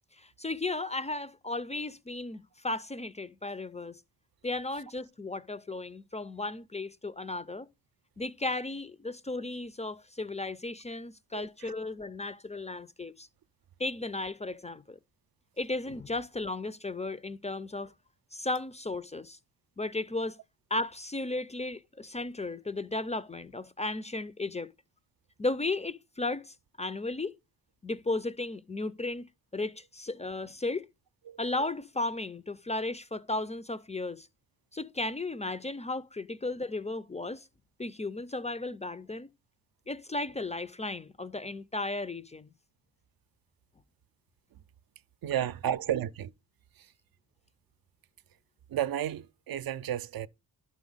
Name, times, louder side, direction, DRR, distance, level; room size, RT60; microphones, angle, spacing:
voice 1, 0.2-4.0 4.4-7.7 8.2-13.3 13.8-15.0 15.6-17.9 18.3-19.4 19.8-20.4 20.7-24.7 25.4-27.3 27.8-30.8 31.4-34.3 34.7-37.5 37.8-39.3 39.9-42.5, left 2 dB, 20° left, 0.4 m, -35 dB
voice 2, 11.3-11.7 31.3-31.4 45.2-46.3 46.8-46.9 48.7-50.3, right 11 dB, 65° right, 0.5 m, -32 dB
11.0 x 6.1 x 3.9 m
wide cardioid pair, 115°, 39 cm